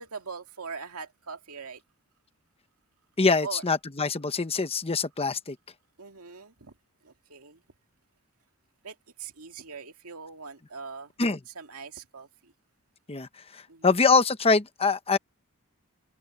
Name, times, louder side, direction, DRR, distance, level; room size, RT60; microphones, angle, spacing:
voice 1, 0.0-1.8 3.4-3.6 6.0-6.8 7.0-7.6 8.8-11.1 11.5-12.5 13.7-13.9, right 5 dB, 75° right, 2.3 m, -41 dB
voice 2, 3.2-5.6 11.2-11.4 13.1-15.2, left 4 dB, 25° left, 0.9 m, -24 dB
open air
head